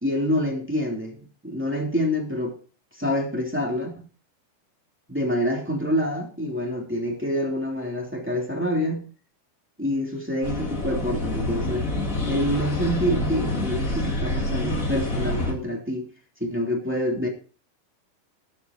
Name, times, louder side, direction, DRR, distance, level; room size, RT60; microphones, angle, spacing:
voice 1, 0.0-2.6 3.0-4.0 5.1-9.1 9.8-11.9 12.2-16.1 16.4-17.3, equal, 5° right, 1.4 m, -27 dB
sound 1, 10.4-15.5, left 1 dB, 45° left, 1.0 m, -27 dB
14.0 x 10.5 x 4.0 m
omnidirectional pair, 5.5 m